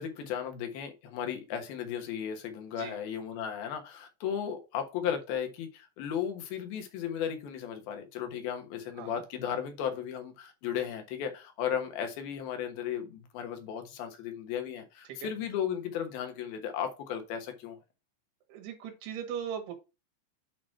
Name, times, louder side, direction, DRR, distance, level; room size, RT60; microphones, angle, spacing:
voice 1, 0.0-17.8, left 8 dB, 70° left, 2.8 m, -35 dB
voice 2, 18.5-19.7, right 8 dB, 70° right, 3.7 m, -39 dB
8.9 x 3.1 x 5.7 m
omnidirectional pair, 5.0 m